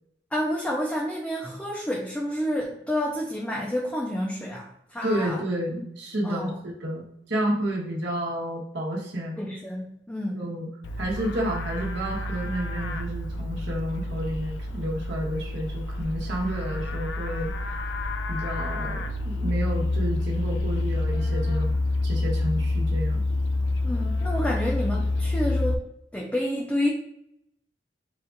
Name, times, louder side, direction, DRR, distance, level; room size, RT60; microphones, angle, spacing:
voice 1, 0.3-5.4 6.2-6.6 9.4-10.5 23.8-25.9 26.1-26.9, equal, 5° left, -3 dB, 0.5 m, -29 dB
voice 2, 5.0-9.4 10.3-10.7 11.0-17.7 18.3-21.7 22.0-23.2, right 1 dB, 75° right, -4 dB, 1.1 m, -30 dB
Livestock farm animals working animals, 10.8-25.7, left 2 dB, 85° left, 0.4 m, -28 dB
4.2 x 2.4 x 3.8 m, 0.76 s
head